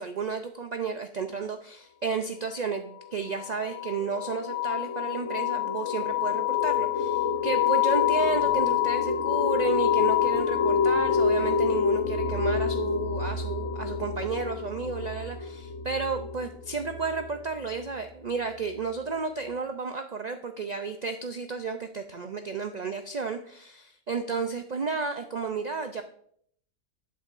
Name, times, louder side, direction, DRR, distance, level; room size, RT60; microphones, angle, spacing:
voice 1, 0.0-26.0, right 4 dB, 70° right, 7 dB, 0.4 m, -32 dB
sound 1, 3.3-17.7, left 7 dB, 65° left, 1.0 m, -27 dB
12.5 x 8.4 x 2.5 m, 0.64 s
omnidirectional pair, 1.5 m